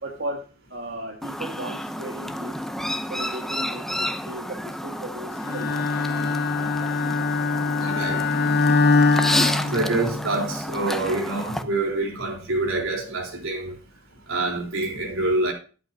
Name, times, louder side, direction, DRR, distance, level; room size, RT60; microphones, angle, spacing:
voice 1, 0.0-2.6 3.1-6.2, right 1 dB, 55° right, 1.8 m, -36 dB
Chirp tweet, 1.2-11.6, equal, ahead, 0.6 m, -30 dB
Bowed string instrument, 5.4-10.4, left 4 dB, 50° left, 0.7 m, -23 dB
voice 2, 7.8-8.2 9.7-13.7 14.3-15.5, right 2 dB, 80° right, 3.8 m, -26 dB
13.0 x 8.6 x 2.8 m
head